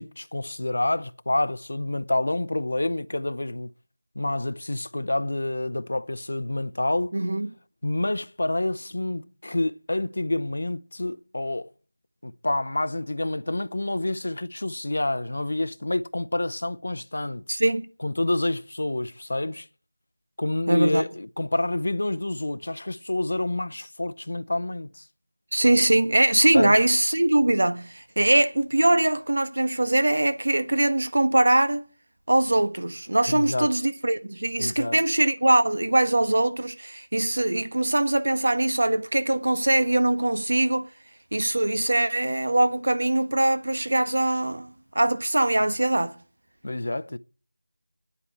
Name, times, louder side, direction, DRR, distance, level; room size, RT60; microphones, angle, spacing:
voice 1, 0.0-3.7 4.2-7.1 7.8-11.7 12.2-17.5 18.0-19.7 20.4-25.0 26.5-26.8 33.3-33.7 34.6-35.0 46.6-47.2, left 2 dB, 60° left, 0.7 m, -28 dB
voice 2, 7.1-7.5 17.5-17.9 20.7-21.0 25.5-31.8 32.3-40.9 41.3-46.1, right 1 dB, 65° right, 1.2 m, -22 dB
9.7 x 8.3 x 8.4 m
figure-of-eight pair, 180°, 0 cm